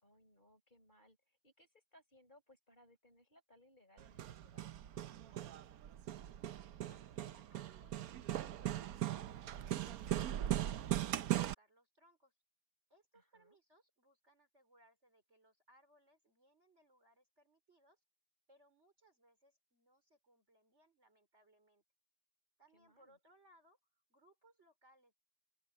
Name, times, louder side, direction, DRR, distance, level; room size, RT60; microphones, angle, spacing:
voice 1, 0.0-5.7 13.1-13.6 22.7-23.2, left 1 dB, 20° left, 5.8 m, -68 dB
Hammer, 4.0-11.5, right 13 dB, 65° right, 0.9 m, -39 dB
voice 2, 6.8-8.9 9.2-12.3 12.9-18.0 18.5-21.8 22.6-25.1, right 1 dB, 30° right, 4.6 m, -70 dB
open air
omnidirectional pair, 2.3 m